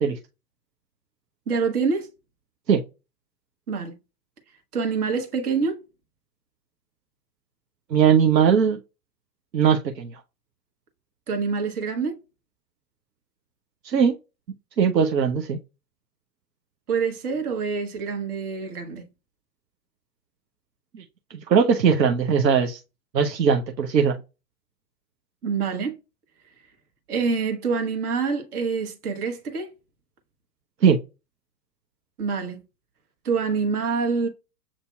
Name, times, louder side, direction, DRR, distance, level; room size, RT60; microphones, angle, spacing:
voice 1, 1.5-2.1 3.7-3.9 4.7-5.8 11.3-12.2 16.9-19.1 25.4-25.9 27.1-29.7 32.2-32.6 33.2-34.3, right 5 dB, 65° right, 1.1 m, -26 dB
voice 2, 7.9-8.8 9.5-10.2 13.8-14.2 14.8-15.6 20.9-21.0 21.3-22.8 23.1-24.2 30.8-31.0, right 7 dB, 85° right, 0.6 m, -20 dB
7.2 x 2.6 x 2.2 m
figure-of-eight pair, 100°, 49 cm